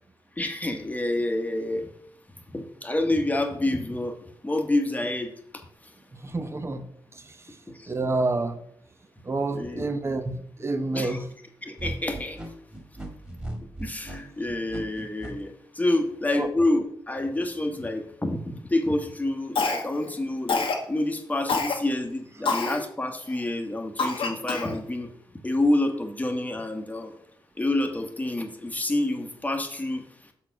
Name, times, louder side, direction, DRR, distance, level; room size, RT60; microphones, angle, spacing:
voice 1, 0.4-1.9 2.5-4.2 4.4-5.6 7.7-7.9 9.5-9.8 10.9-11.2 11.6-12.4 13.8-25.1 25.4-27.1 27.6-30.1, left 1 dB, 15° left, 1.1 m, -28 dB
voice 2, 6.2-6.9 7.9-8.6 9.2-11.3 16.3-16.5, right 2 dB, 30° right, 0.8 m, -28 dB
sound 1, 11.8-15.3, right 1 dB, 15° right, 2.0 m, -36 dB
Cough, 19.6-20.1 20.5-20.8 21.5-21.8 22.5-22.8 23.3-23.4 24.0-24.8, left 4 dB, 90° left, 1.2 m, -26 dB
6.3 x 4.3 x 5.9 m
wide cardioid pair, 95°, 9 cm